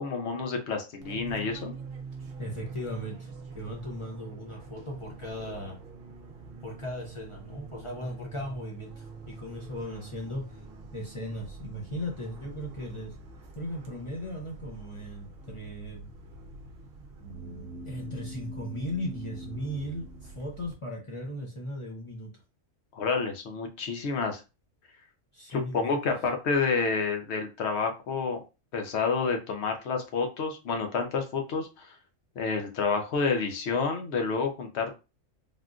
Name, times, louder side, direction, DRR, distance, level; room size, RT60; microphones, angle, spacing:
voice 1, 0.0-1.8 22.9-24.4 25.5-28.4 28.7-31.9 32.4-35.0, left 4 dB, 60° left, 4 dB, 0.9 m, -29 dB
Fixed-wing aircraft airplane, 1.0-20.7, right 4 dB, 55° right, 0.8 m, -46 dB
voice 2, 2.4-5.8 6.6-10.7 10.9-13.2 13.6-16.1 17.8-22.3 25.3-26.1, equal, 35° left, -1 dB, 0.5 m, -37 dB
sound 1, 17.2-20.9, right 1 dB, 75° right, 0.9 m, -43 dB
3.5 x 2.5 x 2.3 m, 0.29 s
omnidirectional pair, 1.4 m